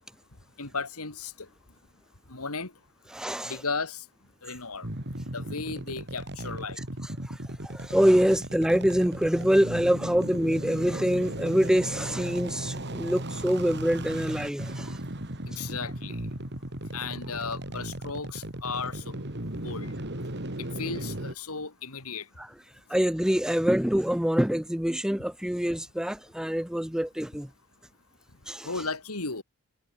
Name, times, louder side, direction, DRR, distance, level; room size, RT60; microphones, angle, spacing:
voice 1, 0.6-1.3 2.3-2.7 3.4-4.0 4.4-4.9 5.3-6.8 15.5-16.3 16.9-19.2 19.6-19.9 20.8-22.2 28.6-29.4, left 4 dB, 80° left, 3.1 m, -35 dB
voice 2, 3.1-3.6 7.3-15.0 22.4-22.5 22.9-27.5 28.5-28.7, equal, 5° right, 0.6 m, -25 dB
sound 1, 4.8-21.3, right 1 dB, 50° right, 4.2 m, -36 dB
head